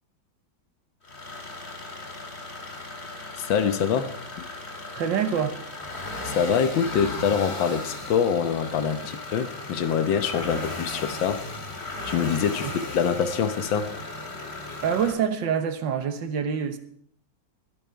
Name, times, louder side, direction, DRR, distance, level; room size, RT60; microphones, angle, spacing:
sound 1, 1.0-15.1, left 2 dB, 35° left, 2.2 m, -36 dB
voice 1, 3.4-4.5 6.2-11.4 12.0-13.9, left 7 dB, 85° left, 1.8 m, -25 dB
voice 2, 4.9-5.6 12.6-12.8 14.8-16.8, right 7 dB, 75° right, 1.8 m, -26 dB
21.5 x 8.9 x 4.6 m
omnidirectional pair, 2.0 m